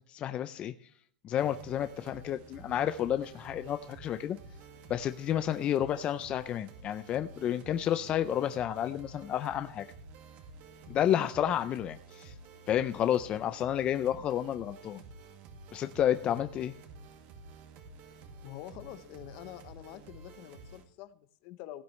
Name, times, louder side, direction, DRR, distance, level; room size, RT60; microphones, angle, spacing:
voice 1, 0.1-0.7 1.2-4.4 4.9-9.8 10.9-12.3 12.7-15.0 15.7-16.7, left 10 dB, 30° left, 11 dB, 0.4 m, -30 dB
sound 1, 1.4-20.8, right 3 dB, 45° right, 1.9 m, -51 dB
voice 2, 18.4-21.8, left 13 dB, 50° left, 14 dB, 0.8 m, -46 dB
16.5 x 9.2 x 3.2 m, 0.63 s
supercardioid pair, 150°, 4 cm